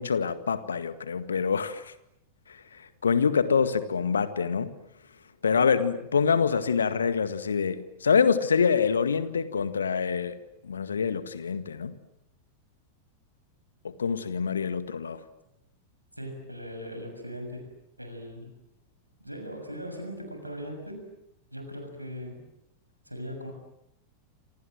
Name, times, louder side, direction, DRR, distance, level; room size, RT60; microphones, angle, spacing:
voice 1, 0.0-1.9 3.0-4.7 5.4-10.4 10.6-11.9 13.8-15.2, left 6 dB, 70° left, 1.8 m, -25 dB
voice 2, 16.2-17.7 18.0-18.5 19.2-21.1 21.5-22.4 23.1-23.5, equal, 90° right, 6.8 m, -39 dB
28.0 x 27.5 x 7.7 m
figure-of-eight pair, 90°, 0 cm